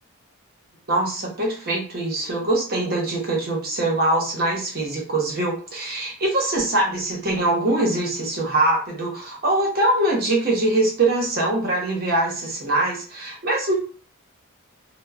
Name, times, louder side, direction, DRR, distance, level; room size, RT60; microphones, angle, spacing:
voice 1, 0.9-13.7, right 2 dB, 45° right, -1 dB, 0.9 m, -23 dB
2.9 x 2.1 x 2.4 m, 0.38 s
head